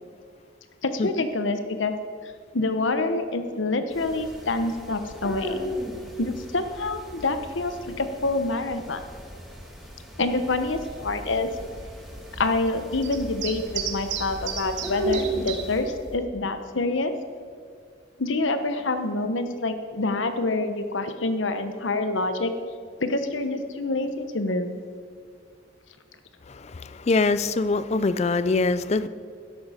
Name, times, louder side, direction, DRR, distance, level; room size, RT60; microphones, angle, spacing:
voice 1, 0.8-1.9 2.5-5.6 6.2-9.0 10.2-11.5 12.4-17.1 18.2-22.5 23.0-24.7, left 2 dB, 85° left, 9 dB, 1.0 m, -27 dB
sound 1, 3.9-15.8, equal, ahead, 2.3 m, -36 dB
sound 2, 10.3-16.2, right 6 dB, 75° right, 1.3 m, -36 dB
voice 2, 27.1-29.1, left 3 dB, 35° left, 15 dB, 0.4 m, -22 dB
13.0 x 10.5 x 5.0 m, 2.2 s
head